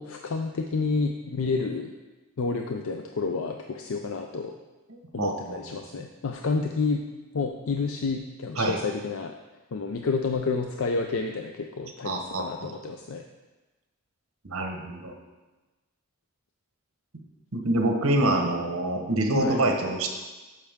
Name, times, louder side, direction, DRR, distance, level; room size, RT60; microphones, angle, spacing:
voice 1, 0.0-1.9 2.4-4.5 5.1-7.0 7.3-9.3 9.7-13.2 19.3-19.6, left 4 dB, 65° left, 4 dB, 0.5 m, -29 dB
voice 2, 4.9-5.6 8.6-8.8 12.0-12.7 14.4-15.1 17.5-20.1, right 1 dB, 70° right, 3 dB, 1.2 m, -26 dB
9.6 x 6.7 x 3.6 m, 1.2 s
head